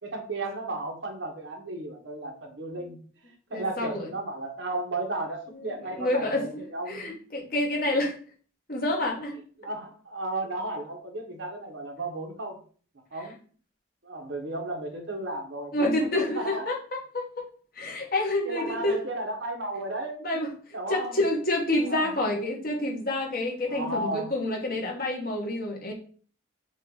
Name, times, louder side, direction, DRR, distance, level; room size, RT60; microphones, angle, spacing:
voice 1, 0.0-3.0 3.5-7.2 9.6-12.6 13.1-13.4 14.0-16.6 18.4-20.2 20.7-21.2 21.9-22.1 23.7-24.3, right 2 dB, 75° right, 2 dB, 1.1 m, -34 dB
voice 2, 3.5-4.1 5.5-8.2 8.7-9.4 15.7-17.4 17.7-19.0 20.2-20.5 20.9-25.9, left 1 dB, 50° left, 0 dB, 1.2 m, -28 dB
5.3 x 2.5 x 3.9 m, 0.44 s
head